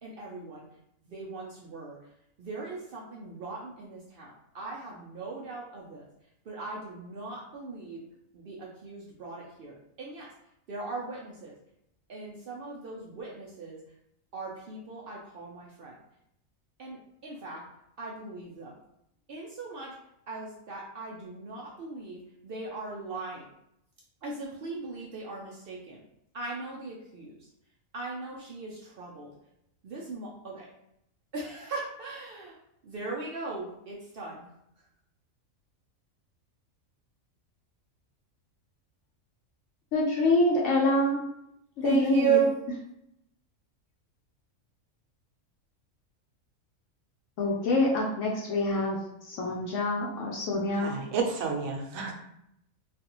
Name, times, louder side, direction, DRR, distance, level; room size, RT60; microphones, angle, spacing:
voice 1, 0.0-0.6 1.0-2.0 2.4-6.0 6.5-8.0 8.3-10.3 10.7-11.5 12.1-13.8 14.3-16.0 16.8-17.6 18.0-18.7 19.3-19.9 20.3-23.5 24.2-26.0 26.3-27.5 27.9-29.3 29.8-30.7 31.3-32.6 32.8-34.5 41.8-42.5, right 5 dB, 60° right, -3 dB, 0.6 m, -37 dB
voice 2, 39.9-41.2 41.8-42.4 47.4-49.0 49.3-51.0, left 2 dB, 70° left, -2 dB, 0.9 m, -26 dB
voice 3, 50.8-52.1, right 5 dB, 80° right, 2 dB, 1.0 m, -31 dB
3.3 x 2.3 x 2.9 m, 0.78 s
omnidirectional pair, 1.4 m